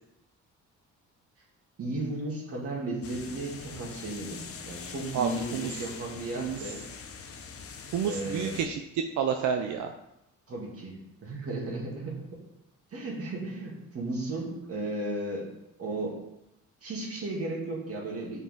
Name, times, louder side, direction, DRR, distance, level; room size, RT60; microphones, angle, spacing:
voice 1, 1.8-6.8 8.0-8.5 10.5-12.4 12.9-15.5 15.8-16.2 16.8-18.4, right 2 dB, 50° right, -3 dB, 2.5 m, -35 dB
sound 1, 3.0-8.7, left 6 dB, 50° left, 0.9 m, -43 dB
voice 2, 5.1-5.7 6.4-6.7 7.9-9.9, right 7 dB, 70° right, 5 dB, 0.6 m, -30 dB
7.7 x 5.4 x 3.8 m, 0.87 s
cardioid pair, 90°, 30 cm